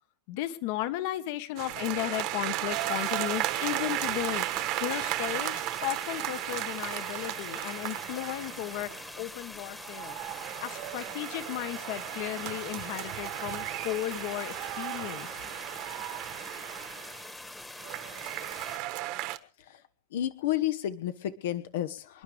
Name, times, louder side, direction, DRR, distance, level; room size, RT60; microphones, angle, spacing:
voice 1, 0.3-4.4 4.8-8.9 9.2-10.2 10.6-15.3, left 15 dB, 50° left, 12 dB, 1.4 m, -35 dB
sound 1, 1.6-9.1 9.8-17.3 17.8-19.4, right 16 dB, 40° right, 1.3 m, -35 dB
sound 2, 2.7-18.8, left 1 dB, 5° left, 1.4 m, -44 dB
voice 2, 20.1-22.2, left 12 dB, 70° left, 10 dB, 1.2 m, -31 dB
28.0 x 11.0 x 3.5 m, 0.38 s
supercardioid pair, 165°, 0 cm